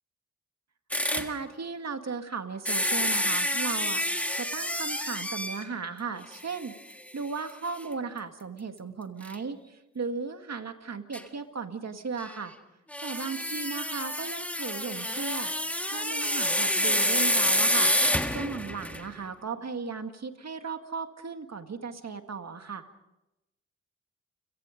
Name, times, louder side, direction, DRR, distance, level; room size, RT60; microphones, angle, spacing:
sound 1, 0.9-1.3 2.7-5.7 6.4-6.5 6.9-7.0 9.2-9.3 11.1-11.2 12.9-19.1, equal, 5° left, 1.7 m, -28 dB
voice 1, 1.1-6.8 7.1-12.5 13.0-15.5 15.9-17.9 18.3-22.9, right 5 dB, 55° right, 7 dB, 2.0 m, -36 dB
30.0 x 17.5 x 5.2 m, 0.92 s
cardioid pair, 65°, 31 cm